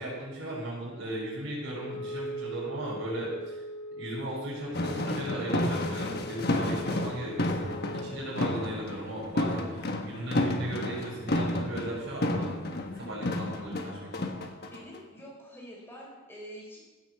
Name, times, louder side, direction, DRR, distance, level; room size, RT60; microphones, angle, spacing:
voice 1, 0.0-3.6 4.0-12.6 13.0-14.3, right 1 dB, 70° right, -5 dB, 5.8 m, -37 dB
Wind instrument woodwind instrument, 1.6-8.7, equal, 75° left, 4.2 m, -41 dB
sound 1, 4.7-15.2, left 1 dB, 50° left, 1.3 m, -31 dB
voice 2, 14.7-16.9, equal, 10° left, -3 dB, 4.6 m, -46 dB
15.5 x 8.1 x 6.8 m, 1.2 s
head